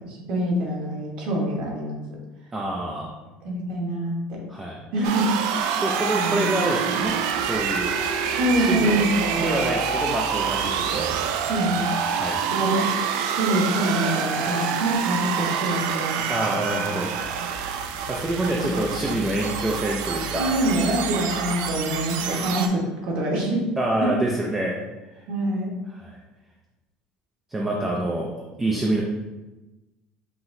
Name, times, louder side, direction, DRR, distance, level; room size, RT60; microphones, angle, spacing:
voice 1, 0.0-2.0 3.4-4.4 4.9-5.3 6.1-6.5 8.3-9.5 11.4-11.9 12.5-12.9 13.2-16.2 18.5-18.6 20.4-23.6 24.0-24.4 25.3-25.7, right 1 dB, 50° right, -2 dB, 1.1 m, -25 dB
voice 2, 2.5-3.2 4.5-4.8 5.8-7.9 8.3-8.9 9.4-11.1 12.1-12.4 16.3-17.1 18.1-20.5 23.8-24.8 25.9-26.2 27.5-28.3 28.6-29.0, right 1 dB, 10° right, -2 dB, 0.4 m, -26 dB
sound 1, 5.0-22.7, right 7 dB, 75° right, 0.4 m, -27 dB
5.7 x 2.9 x 2.6 m, 1.1 s
cardioid pair, 175°, 2 cm